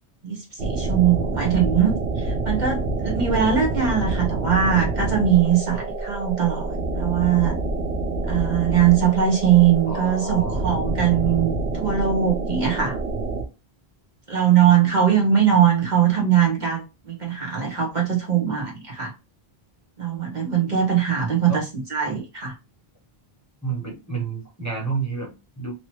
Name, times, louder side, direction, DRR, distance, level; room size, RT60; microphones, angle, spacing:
voice 1, 0.2-6.7 7.0-7.6 8.3-13.0 14.3-19.1 20.0-22.5, right 9 dB, 50° right, 1.0 m, -21 dB
sound 1, 0.6-13.4, right 3 dB, 90° right, 1.0 m, -27 dB
voice 2, 9.9-10.6 21.5-21.7 23.6-25.7, right 4 dB, 15° left, 1.0 m, -30 dB
3.0 x 2.9 x 2.9 m
omnidirectional pair, 1.1 m